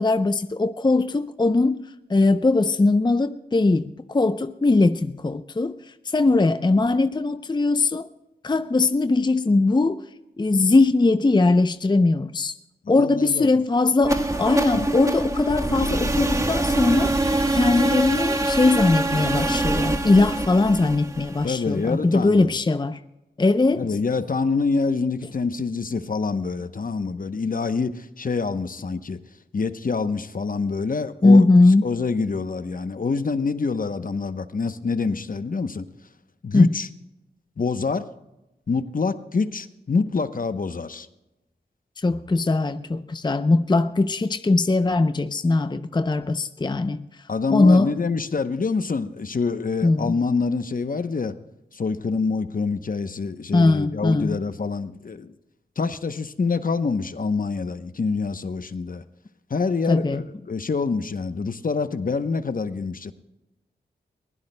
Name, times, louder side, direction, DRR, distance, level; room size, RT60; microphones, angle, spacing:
voice 1, 0.0-1.8 2.1-8.1 8.4-10.0 10.4-12.5 12.9-23.0 23.4-23.8 31.2-31.8 36.5-36.7 42.0-47.1 47.5-47.9 49.8-50.1 53.5-54.3 59.9-60.2, left 3 dB, 25° left, 0.6 m, -20 dB
voice 2, 12.8-13.6 14.7-14.9 21.4-22.6 23.8-29.2 29.5-31.5 31.8-35.9 36.4-36.9 37.6-38.1 38.7-41.1 47.3-51.4 51.7-55.3 55.8-59.0 59.5-63.1, left 4 dB, 50° left, 0.8 m, -26 dB
sound 1, 14.0-21.9, right 1 dB, 15° right, 1.3 m, -24 dB
22.5 x 16.0 x 2.2 m
cardioid pair, 45°, 18 cm